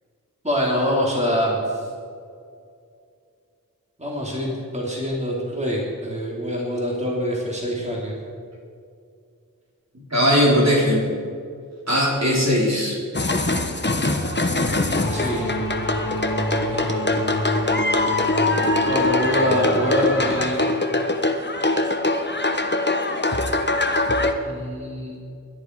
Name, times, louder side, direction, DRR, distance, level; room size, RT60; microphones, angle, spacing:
voice 1, 0.4-1.6 4.0-8.1 15.1-15.5 16.7-17.0 18.9-20.6 24.5-25.1, equal, 20° right, -4 dB, 3.4 m, -25 dB
voice 2, 10.1-11.0 11.9-13.0, equal, 50° right, -5 dB, 4.0 m, -18 dB
sound 1, 13.1-24.3, left 2 dB, 30° left, 1.2 m, -23 dB
sound 2, 15.0-20.5, equal, 90° left, 2.0 m, -29 dB
21.0 x 11.0 x 4.8 m, 2.3 s
wide cardioid pair, 40°, 33 cm